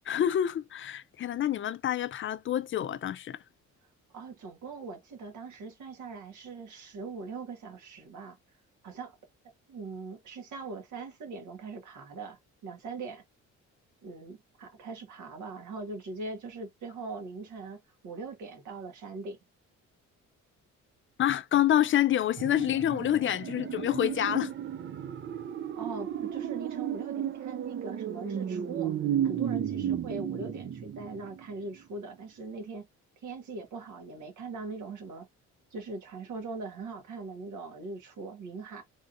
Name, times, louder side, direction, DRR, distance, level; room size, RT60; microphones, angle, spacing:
voice 1, 0.1-3.4 21.2-24.5, left 11 dB, 40° left, 0.4 m, -27 dB
voice 2, 4.1-8.4 8.8-9.1 9.7-13.2 14.0-19.4 25.8-28.9 29.2-32.9 33.2-35.3 35.7-38.8, right 3 dB, 75° right, 1.6 m, -41 dB
sound 1, 22.4-31.5 31.8-31.9, right 9 dB, 40° right, 0.4 m, -33 dB
3.5 x 2.7 x 2.6 m
cardioid pair, 90°, 30 cm